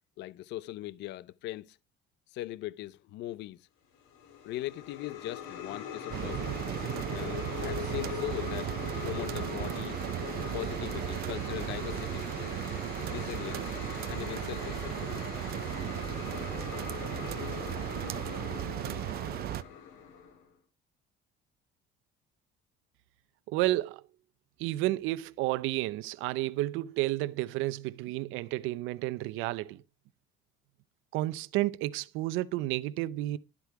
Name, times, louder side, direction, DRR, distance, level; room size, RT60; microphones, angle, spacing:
voice 1, 0.2-1.8 2.3-3.7 4.4-6.5 7.1-10.0 10.5-12.5 13.1-13.7 14.1-15.2, left 15 dB, 60° left, 0.6 m, -40 dB
sound 1, 4.0-20.5, left 8 dB, 85° left, 4.5 m, -41 dB
sound 2, 6.1-19.6, right 14 dB, 50° right, 0.6 m, -36 dB
voice 2, 23.5-24.0 24.6-29.8 31.1-33.4, right 17 dB, 85° right, 0.7 m, -31 dB
12.5 x 8.1 x 4.8 m
cardioid pair, 150°, 20 cm